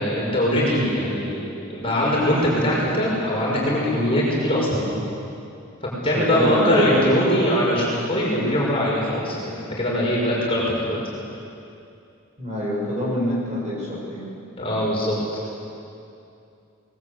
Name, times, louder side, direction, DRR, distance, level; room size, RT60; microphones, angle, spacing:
voice 1, 0.0-1.4 1.7-4.9 6.0-11.0 14.6-15.1, equal, 25° left, -5 dB, 5.8 m, -22 dB
voice 2, 6.0-7.1 12.4-14.2, left 1 dB, 30° right, -5 dB, 6.6 m, -25 dB
23.5 x 20.5 x 8.4 m, 2.6 s
head